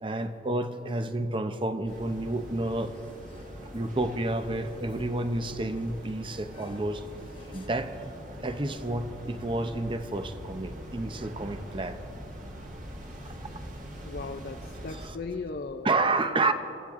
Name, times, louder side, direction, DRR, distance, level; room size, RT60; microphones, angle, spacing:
voice 1, 0.0-2.9 3.7-7.0 7.5-7.9 8.4-12.0 13.2-13.4 14.9-15.2 15.8-16.5, right 2 dB, 30° right, 9 dB, 0.8 m, -30 dB
sound 1, 1.8-7.7, left 1 dB, 30° left, 1.4 m, -52 dB
sound 2, 1.9-15.1, equal, 45° right, 1.9 m, -43 dB
voice 2, 14.0-15.9, left 4 dB, 60° left, 4 dB, 0.6 m, -37 dB
25.5 x 14.5 x 3.7 m, 2.9 s
head